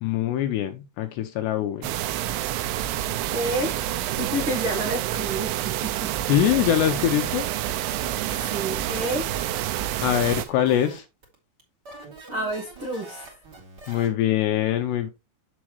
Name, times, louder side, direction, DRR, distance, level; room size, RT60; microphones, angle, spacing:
voice 1, 0.0-1.9 6.3-7.5 10.0-11.1 13.9-15.1, left 11 dB, 75° left, 2.6 m, -23 dB
sound 1, 1.8-10.5, right 13 dB, 85° right, 3.1 m, -28 dB
sound 2, 1.9-2.9 3.4-4.7 5.4-6.5 6.7-11.3 11.6-11.7 11.9-14.1, right 3 dB, 30° right, 2.1 m, -44 dB
voice 2, 3.3-6.1 8.3-9.3 12.3-13.4, right 1 dB, 70° right, 1.2 m, -30 dB
7.4 x 7.2 x 3.2 m
omnidirectional pair, 5.5 m